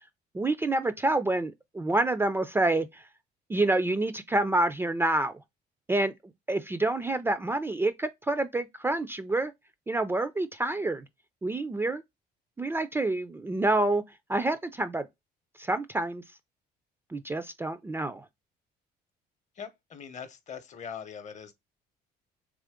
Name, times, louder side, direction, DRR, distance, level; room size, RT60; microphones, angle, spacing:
voice 1, 0.3-3.0 3.5-5.3 5.9-6.1 6.5-9.5 9.9-11.0 11.4-12.0 12.6-14.0 14.3-15.1 15.6-16.2 17.1-18.2, right 2 dB, 15° right, 0.3 m, -27 dB
voice 2, 19.6-21.5, left 7 dB, 45° left, 0.7 m, -41 dB
3.7 x 3.1 x 3.5 m
cardioid pair, 110°, 17 cm